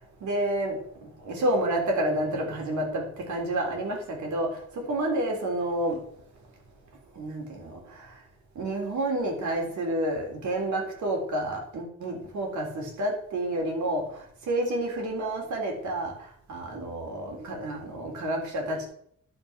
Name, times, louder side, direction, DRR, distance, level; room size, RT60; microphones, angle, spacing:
voice 1, 0.2-6.0 7.2-8.2 8.6-18.9, right 1 dB, 80° right, 1 dB, 3.5 m, -30 dB
11.5 x 5.3 x 5.8 m, 0.65 s
wide cardioid pair, 170°, 29 cm